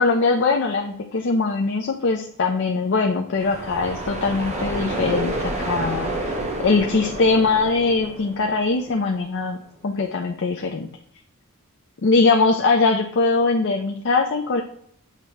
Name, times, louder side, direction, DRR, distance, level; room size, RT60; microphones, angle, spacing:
voice 1, 0.0-6.3 6.6-9.6 9.8-10.9 12.0-14.6, left 3 dB, 55° left, 2 dB, 0.5 m, -21 dB
sound 1, 3.3-9.1, right 1 dB, 30° right, 1.0 m, -29 dB
8.2 x 2.9 x 4.5 m, 0.69 s
head